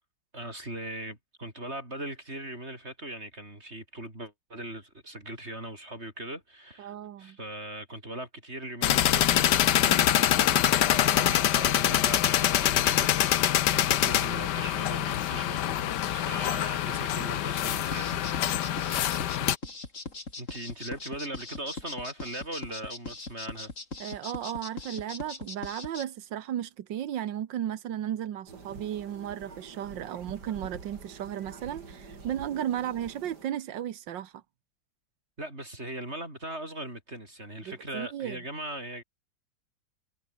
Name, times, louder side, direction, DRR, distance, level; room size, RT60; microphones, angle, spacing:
voice 1, 0.3-18.8 20.4-23.7 35.4-39.0, right 1 dB, 35° right, 6.9 m, -40 dB
voice 2, 6.8-7.4 24.0-34.4 37.6-38.4, right 11 dB, 85° right, 1.8 m, -35 dB
sound 1, 8.8-19.6, left 12 dB, 70° left, 1.5 m, -25 dB
sound 2, 17.9-26.0, left 3 dB, 45° left, 4.4 m, -40 dB
sound 3, 28.5-33.4, right 4 dB, 65° right, 4.0 m, -46 dB
omnidirectional pair, 1.9 m